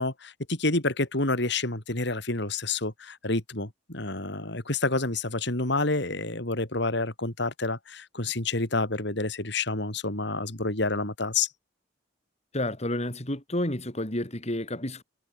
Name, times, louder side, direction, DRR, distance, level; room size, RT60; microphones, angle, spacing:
voice 1, 0.0-11.5, left 3 dB, 65° left, 3.9 m, -28 dB
voice 2, 12.5-15.0, left 1 dB, 35° left, 4.6 m, -30 dB
head